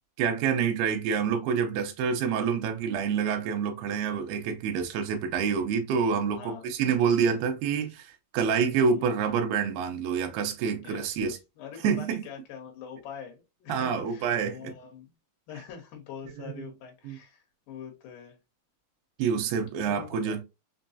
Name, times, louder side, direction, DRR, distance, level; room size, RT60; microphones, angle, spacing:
voice 1, 0.2-11.4 11.8-12.2 13.7-14.8 16.4-16.7 17.0-17.2 19.2-20.4, right 6 dB, 85° right, 2.7 m, -27 dB
voice 2, 6.4-6.7 7.8-8.0 8.9-9.1 10.8-15.1 15.5-18.4 19.7-20.4, left 8 dB, 65° left, 2.5 m, -44 dB
6.2 x 2.3 x 2.6 m
omnidirectional pair, 4.3 m